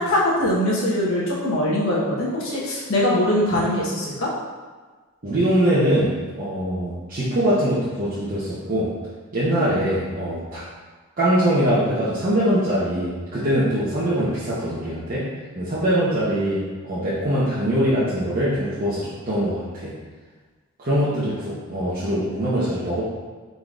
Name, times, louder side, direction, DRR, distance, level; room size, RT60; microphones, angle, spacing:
voice 1, 0.0-4.3, left 1 dB, 70° left, -6 dB, 1.2 m, -22 dB
voice 2, 5.2-6.1 6.4-8.9 9.3-10.6 11.2-15.2 15.6-16.6 16.9-19.9 20.8-23.0, equal, 40° right, -10 dB, 0.9 m, -22 dB
5.1 x 3.9 x 2.5 m, 1.4 s
head